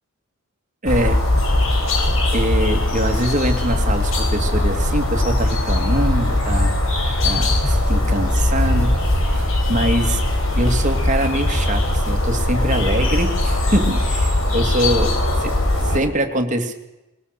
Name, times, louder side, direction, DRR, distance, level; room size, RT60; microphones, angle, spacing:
voice 1, 0.8-1.2 2.0-6.7 7.2-9.0 9.3-9.4 9.7-10.2 10.6-15.1 15.4-15.5 15.8-16.7, right 1 dB, 35° right, 4 dB, 2.6 m, -23 dB
sound 1, 0.9-16.0, left 1 dB, 70° left, 5.0 m, -20 dB
21.5 x 21.5 x 6.8 m, 0.95 s
head